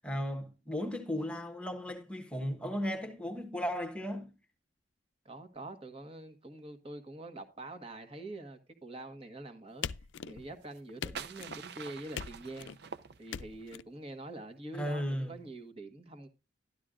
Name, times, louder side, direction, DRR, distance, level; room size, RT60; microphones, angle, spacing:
voice 1, 0.0-4.3 14.7-15.4, equal, 5° left, 1.2 m, -35 dB
voice 2, 5.2-9.9 10.2-12.7 13.2-16.3, right 2 dB, 30° right, 1.5 m, -45 dB
sound 1, 9.8-10.6 11.0-11.6 12.1-12.8 13.3-13.8, left 7 dB, 75° left, 0.4 m, -41 dB
sound 2, 10.6-13.7, right 6 dB, 55° right, 0.6 m, -46 dB
12.5 x 11.5 x 2.5 m
head